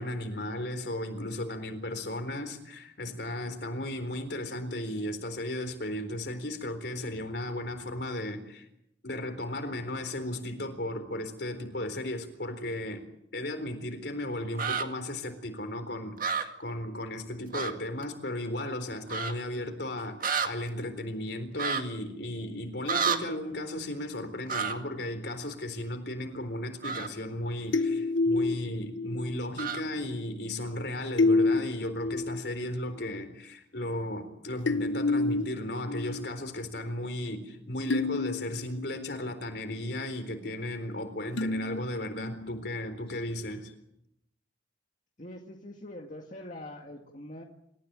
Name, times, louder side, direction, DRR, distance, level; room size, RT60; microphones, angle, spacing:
voice 1, 0.0-8.7 9.0-13.1 13.3-43.7, left 1 dB, 60° left, 4.0 m, -35 dB
sound 1, 14.5-14.9 16.2-16.4 17.5-17.7 18.0-18.1 19.1-19.3 20.2-20.5 21.6-21.8 22.9-23.2 24.5-24.7 26.8-27.1 29.6-29.8, right 6 dB, 45° right, 2.1 m, -29 dB
sound 2, 27.7-29.4 31.2-32.4 33.0-33.1 34.7-36.3 36.7-36.8 37.9-39.2 41.4-42.6, left 3 dB, 75° left, 1.1 m, -29 dB
voice 2, 45.2-47.4, left 1 dB, 40° left, 2.1 m, -43 dB
27.5 x 15.0 x 9.0 m
head